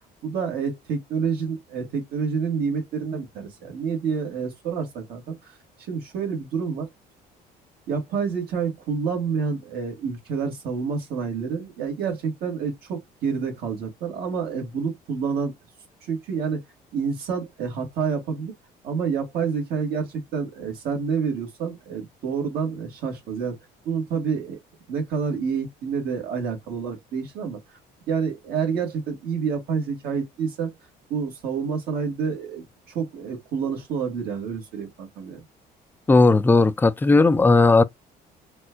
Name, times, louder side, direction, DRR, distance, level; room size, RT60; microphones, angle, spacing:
voice 1, 0.2-5.5 5.8-6.9 7.9-15.5 16.0-16.6 16.9-18.5 18.8-23.6 23.9-24.6 24.9-27.6 28.1-30.7 31.1-35.4, right 6 dB, 65° right, 1.8 m, -28 dB
voice 2, 36.1-37.8, left 3 dB, 10° left, 0.3 m, -16 dB
4.3 x 2.3 x 2.2 m
cardioid pair, 110°, 17 cm